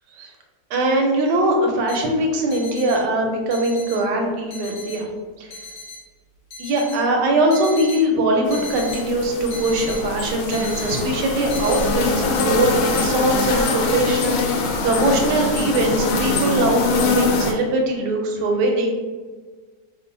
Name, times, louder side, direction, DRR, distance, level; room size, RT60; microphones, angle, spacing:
voice 1, 0.7-5.1 5.4-5.6 6.6-12.1 12.4-18.9, right 1 dB, 80° right, 2 dB, 1.2 m, -21 dB
sound 1, 1.9-2.0 2.5-3.0 3.5-4.0 4.5-5.0 5.5-6.0 6.5-7.0 7.5-8.0 8.5-9.0 9.5-10.0 10.5-11.0 11.5-11.8, left 3 dB, 60° left, 1.2 m, -36 dB
sound 2, 8.5-17.5, left 3 dB, 85° left, 1.2 m, -23 dB
3.0 x 2.0 x 3.8 m, 1.4 s
omnidirectional pair, 1.8 m